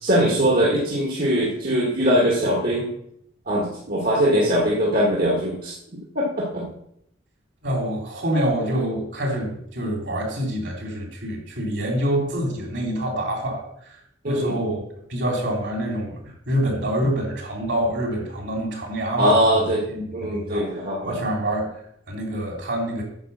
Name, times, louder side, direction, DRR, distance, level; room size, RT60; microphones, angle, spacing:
voice 1, 0.0-2.9 3.5-5.7 6.2-6.7 14.2-14.6 19.2-19.8 20.1-21.1, equal, 50° right, -3 dB, 1.7 m, -21 dB
voice 2, 7.6-14.0 14.2-14.8 15.1-16.2 16.5-23.0, right 1 dB, 65° right, 0 dB, 2.9 m, -26 dB
9.1 x 5.0 x 6.6 m, 0.73 s
head